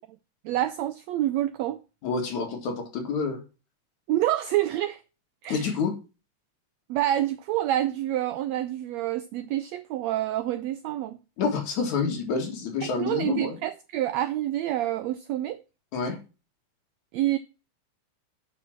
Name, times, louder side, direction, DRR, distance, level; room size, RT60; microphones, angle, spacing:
voice 1, 0.4-1.8 4.1-5.0 5.4-5.7 6.9-11.2 12.8-15.6 17.1-17.4, right 13 dB, 85° right, 1.5 m, -27 dB
voice 2, 2.0-3.4 5.5-5.9 11.4-13.6 15.9-16.2, left 5 dB, 65° left, 3.3 m, -28 dB
7.5 x 6.2 x 5.9 m
omnidirectional pair, 3.7 m